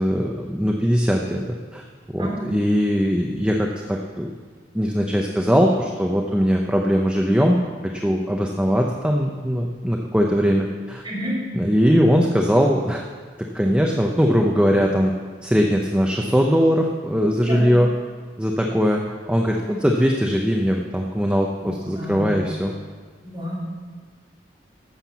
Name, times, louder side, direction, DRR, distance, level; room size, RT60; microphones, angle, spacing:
voice 1, 0.0-1.8 2.1-4.3 4.7-7.6 7.8-11.0 11.5-13.0 13.4-15.1 15.4-17.9 18.4-22.7, equal, 5° right, 0 dB, 0.7 m, -20 dB
voice 2, 11.0-11.4 17.5-17.7 21.6-22.4 23.2-23.6, equal, 25° right, -6 dB, 4.5 m, -30 dB
11.5 x 7.4 x 7.2 m, 1.5 s
head